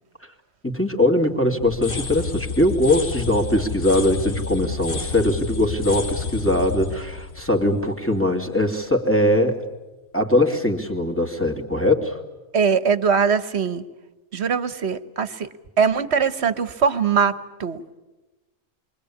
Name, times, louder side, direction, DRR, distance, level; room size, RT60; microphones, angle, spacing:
voice 1, 0.6-9.6 10.1-12.2, left 1 dB, 10° left, 2 dB, 2.6 m, -21 dB
sound 1, 1.6-8.5, left 5 dB, 45° left, 1.5 m, -30 dB
voice 2, 12.5-13.8 14.3-15.5 15.8-17.3 17.6-18.0, right 6 dB, 55° right, 12 dB, 1.4 m, -21 dB
28.0 x 23.5 x 8.6 m, 1.1 s
omnidirectional pair, 1.4 m